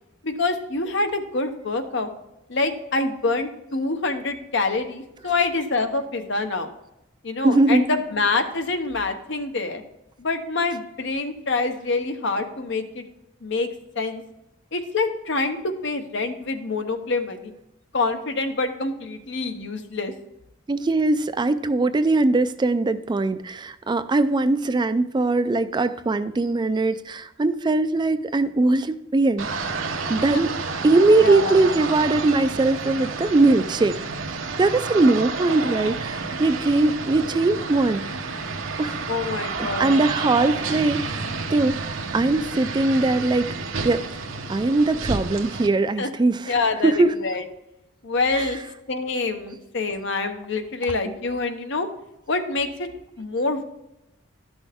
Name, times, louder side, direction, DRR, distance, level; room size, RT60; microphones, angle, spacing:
voice 1, 0.2-2.1 2.5-6.7 7.2-9.8 10.2-13.0 13.4-13.7 13.9-14.2 14.7-17.5 17.9-20.1 30.3-30.4 31.2-31.6 39.1-40.0 46.0-46.1 46.5-47.4 48.0-48.6 48.9-51.9 52.3-52.9 53.2-53.6, left 3 dB, 65° left, 7 dB, 0.9 m, -26 dB
voice 2, 7.4-7.8 20.7-29.7 30.1-30.5 30.8-34.0 34.6-38.2 38.8-39.0 39.6-41.2 41.5-43.6 43.8-44.1 44.5-46.6 46.8-47.2 48.4-48.5, right 2 dB, 25° right, 11 dB, 0.4 m, -21 dB
sound 1, 29.4-45.7, right 4 dB, 85° right, 0.9 m, -30 dB
12.0 x 6.2 x 3.5 m, 0.91 s
head